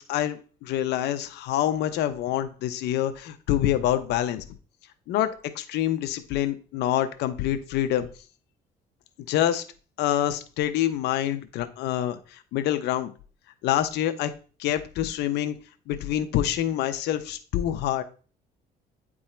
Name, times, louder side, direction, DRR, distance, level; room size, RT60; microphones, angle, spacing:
voice 1, 0.0-4.4 5.1-8.1 9.3-9.6 10.0-13.1 13.6-14.3 14.6-15.6 15.9-18.0, left 12 dB, 80° left, 10 dB, 0.8 m, -26 dB
9.4 x 3.7 x 4.4 m, 0.38 s
cardioid pair, 110°, 17 cm